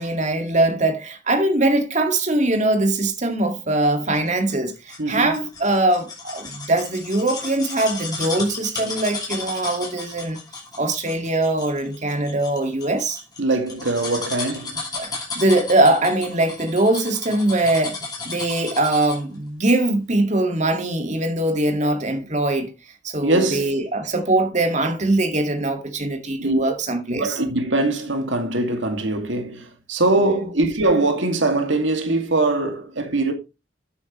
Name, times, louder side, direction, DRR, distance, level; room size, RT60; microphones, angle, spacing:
voice 1, 0.0-10.4 10.8-13.2 15.0-18.0 18.2-22.7 23.0-27.4 30.2-30.5, right 2 dB, 35° right, 2.0 m, -22 dB
sound 1, 4.1-19.3 19.7-19.8, left 3 dB, 20° left, 5.8 m, -34 dB
voice 2, 5.0-5.3 13.4-14.8 23.2-23.8 26.4-26.7 27.1-33.3, right 2 dB, 70° right, 2.2 m, -22 dB
11.0 x 9.4 x 3.1 m
head